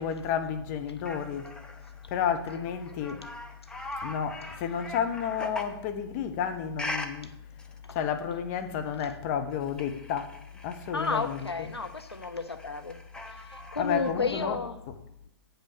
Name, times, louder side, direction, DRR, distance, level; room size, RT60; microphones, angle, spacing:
voice 1, 0.0-1.5 2.1-3.3 4.0-7.3 7.9-10.3 10.6-11.7 13.8-14.6, left 8 dB, 35° left, 1.0 m, -31 dB
sound 1, 1.1-5.8 6.8-7.1 7.6-7.8 9.5-14.1, left 2 dB, 5° left, 0.8 m, -42 dB
voice 2, 10.9-13.0 13.3-14.7, left 4 dB, 85° left, 0.8 m, -32 dB
9.2 x 5.4 x 6.6 m
figure-of-eight pair, 115°, 13 cm